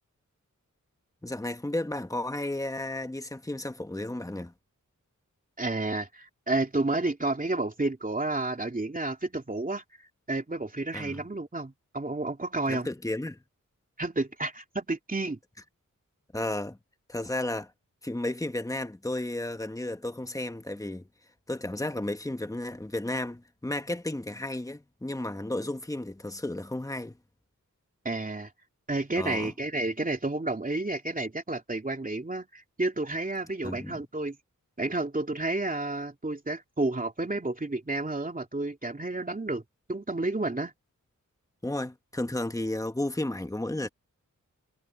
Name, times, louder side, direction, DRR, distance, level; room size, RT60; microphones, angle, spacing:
voice 1, 1.2-4.5 10.9-11.3 12.7-13.4 16.3-16.8 17.1-17.7 18.0-21.1 21.5-27.2 29.1-29.5 33.6-34.0 41.6-43.9, left 1 dB, 10° left, 1.3 m, -33 dB
voice 2, 5.6-9.8 10.3-12.9 14.0-15.4 28.0-28.5 28.9-34.4 34.8-39.6 39.9-40.7, right 2 dB, 25° right, 2.8 m, -31 dB
wide cardioid pair, 85°, 32 cm